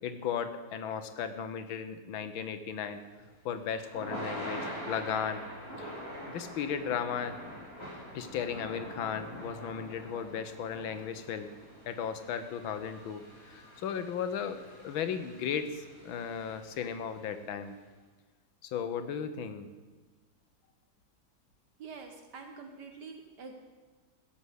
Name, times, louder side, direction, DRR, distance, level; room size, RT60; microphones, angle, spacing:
voice 1, 0.0-3.0 3.5-5.4 5.8-5.9 6.3-7.4 8.1-11.5 11.9-17.8 18.6-19.7, left 7 dB, 85° left, 10 dB, 1.8 m, -36 dB
Thunder / Rain, 3.0-17.2, equal, 45° left, 5.0 m, -45 dB
voice 2, 21.8-23.5, right 5 dB, 60° right, 5 dB, 1.7 m, -46 dB
16.0 x 7.0 x 8.1 m, 1.4 s
omnidirectional pair, 2.1 m